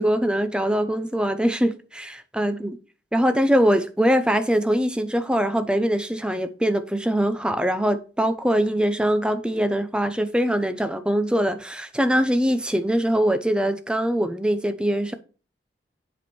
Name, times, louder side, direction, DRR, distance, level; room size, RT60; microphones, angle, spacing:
voice 1, 0.0-2.8 3.1-15.1, equal, 5° right, 0.6 m, -22 dB
8.0 x 5.3 x 4.4 m
head